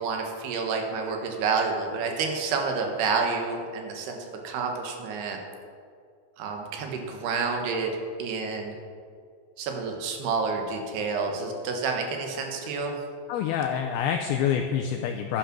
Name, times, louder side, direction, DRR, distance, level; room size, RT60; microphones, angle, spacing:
voice 1, 0.0-4.2 4.4-5.4 6.4-7.9 8.2-8.7 9.6-12.9, right 4 dB, 70° right, 2 dB, 3.2 m, -29 dB
voice 2, 13.3-15.4, left 8 dB, 90° left, 4 dB, 2.2 m, -27 dB
12.0 x 10.0 x 6.1 m, 2.3 s
omnidirectional pair, 5.2 m